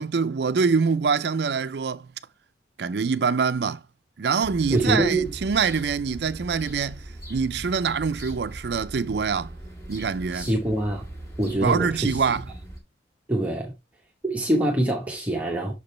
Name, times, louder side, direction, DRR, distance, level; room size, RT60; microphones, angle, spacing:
voice 1, 0.0-2.1 2.8-3.8 4.2-7.0 7.3-9.5 9.9-10.5 11.6-12.5, right 5 dB, 65° right, 0.5 m, -24 dB
sound 1, 4.4-12.8, right 1 dB, 15° left, 2.0 m, -40 dB
voice 2, 4.7-5.3 10.3-11.1 11.4-12.3 13.3-13.7 14.2-15.7, right 1 dB, 10° right, 1.1 m, -24 dB
6.8 x 5.1 x 3.2 m
head